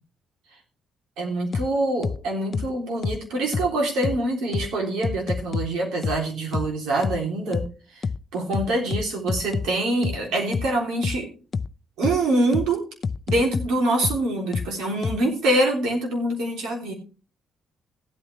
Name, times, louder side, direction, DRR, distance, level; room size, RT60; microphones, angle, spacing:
voice 1, 1.2-7.7 7.9-8.0 8.3-11.3 12.0-12.8 13.3-16.9, right 2 dB, 85° right, 1 dB, 3.5 m, -25 dB
sound 1, 1.5-1.7 2.0-2.2 2.5-2.7 3.0-3.2 3.5-3.7 4.0-4.2 4.5-4.7 5.0-5.7 6.0-6.2 6.5-6.7 7.0-7.2 7.5-7.7 8.0-8.2 8.5-9.7 10.0-10.2 10.5-10.7 11.0-11.2 11.5-11.7 12.0-12.2 12.5-12.7 13.0-13.7 14.0-14.2 14.5-14.7 15.0-15.2, left 5 dB, 40° left, 0.4 m, -26 dB
15.0 x 8.9 x 3.4 m, 0.37 s
cardioid pair, 90°, 0 cm